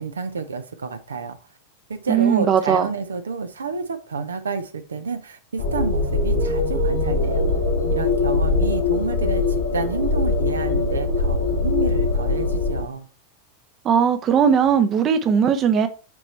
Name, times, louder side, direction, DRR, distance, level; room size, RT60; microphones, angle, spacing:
voice 1, 0.0-1.4 1.9-7.4 7.9-9.4 9.7-13.1, right 5 dB, 70° right, 0.8 m, -29 dB
voice 2, 2.1-2.9 13.8-15.9, right 7 dB, 30° right, 0.8 m, -18 dB
sound 1, 5.6-12.8, left 3 dB, 85° left, 2.4 m, -22 dB
7.8 x 4.4 x 4.3 m
figure-of-eight pair, 90°, 0 cm